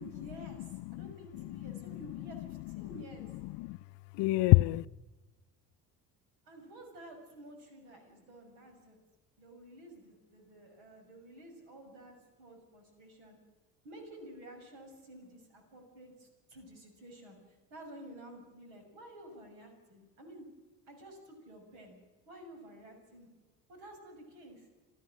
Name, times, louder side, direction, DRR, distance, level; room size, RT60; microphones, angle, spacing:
voice 1, 0.0-3.3 6.4-9.0 9.4-13.4 13.8-20.5 20.9-22.0 22.3-23.3 23.7-24.7, right 1 dB, 70° right, 6.1 m, -51 dB
voice 2, 1.4-2.0 2.8-2.9 3.4-3.8 4.2-4.9, left 21 dB, 60° left, 0.6 m, -27 dB
27.5 x 18.5 x 6.4 m
hypercardioid pair, 60°, 48 cm